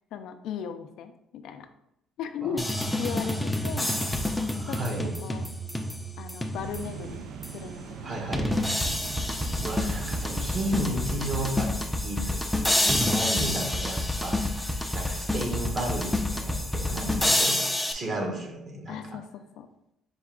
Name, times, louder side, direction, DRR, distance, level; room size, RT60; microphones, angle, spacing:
voice 1, 0.1-1.7 2.2-3.9 4.7-4.8 5.2-5.5 6.2-7.2 7.5-8.9 12.8-13.0 18.9-19.7, left 7 dB, 75° left, 8 dB, 0.4 m, -37 dB
voice 2, 2.4-5.2 8.0-8.5 9.6-17.6 17.9-19.2, right 1 dB, 45° right, 2 dB, 1.0 m, -34 dB
sound 1, 2.6-7.0 7.4-7.5 8.3-17.9, left 1 dB, 5° left, 0.4 m, -28 dB
sound 2, 6.5-11.6, right 7 dB, 75° right, 0.3 m, -40 dB
5.3 x 2.3 x 3.6 m, 0.81 s
cardioid pair, 110°, 0 cm